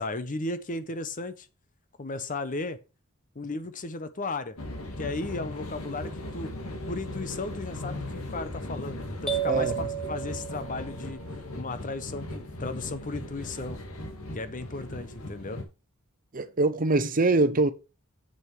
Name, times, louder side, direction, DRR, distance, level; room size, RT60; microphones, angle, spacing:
voice 1, 0.0-1.5 2.0-2.8 3.3-4.6 5.0-6.5 6.9-11.2 11.5-13.8 14.3-15.6, left 3 dB, 40° left, 0.9 m, -35 dB
sound 1, 4.6-15.6, left 1 dB, 80° left, 2.0 m, -38 dB
sound 2, 9.3-11.2, right 9 dB, 5° left, 1.4 m, -32 dB
voice 2, 16.3-17.7, right 2 dB, 40° right, 0.8 m, -23 dB
8.0 x 6.3 x 4.6 m
head